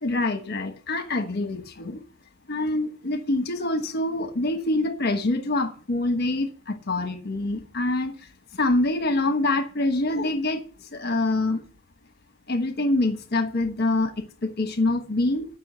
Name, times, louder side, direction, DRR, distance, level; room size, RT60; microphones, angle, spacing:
voice 1, 0.0-2.0 2.5-11.6 12.5-15.5, left 2 dB, 55° left, 1.3 m, -25 dB
13.0 x 5.9 x 6.8 m
head